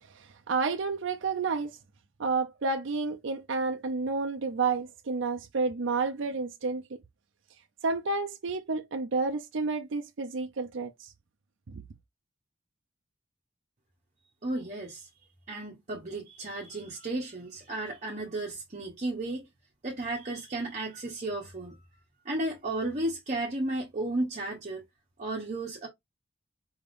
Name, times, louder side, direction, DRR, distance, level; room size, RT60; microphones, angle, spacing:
voice 1, 0.1-1.8 2.2-7.0 7.8-11.1 11.7-11.8, right 4 dB, 65° right, 0.6 m, -30 dB
voice 2, 14.4-15.1 15.5-19.5 19.8-21.8 22.2-24.8 25.2-25.9, right 2 dB, 40° right, 0.9 m, -33 dB
4.7 x 3.4 x 2.5 m
head